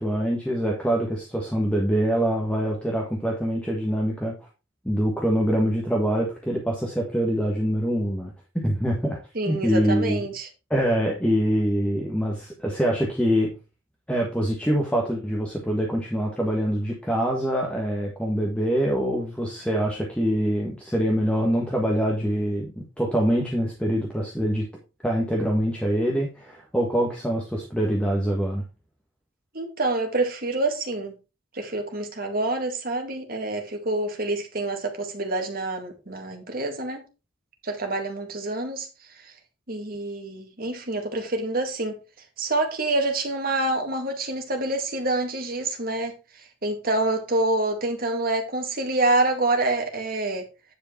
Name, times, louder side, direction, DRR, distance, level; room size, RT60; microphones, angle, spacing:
voice 1, 0.0-4.3 4.8-9.2 9.5-10.3 10.7-13.5 14.1-22.7 23.0-24.7 25.0-28.6, equal, 5° left, 1.5 m, -24 dB
voice 2, 9.3-10.5 29.5-31.2 31.5-37.0 37.6-38.9 39.2-39.3 39.7-42.0 42.4-50.4, right 2 dB, 50° right, 2.1 m, -27 dB
9.9 x 5.0 x 4.5 m
head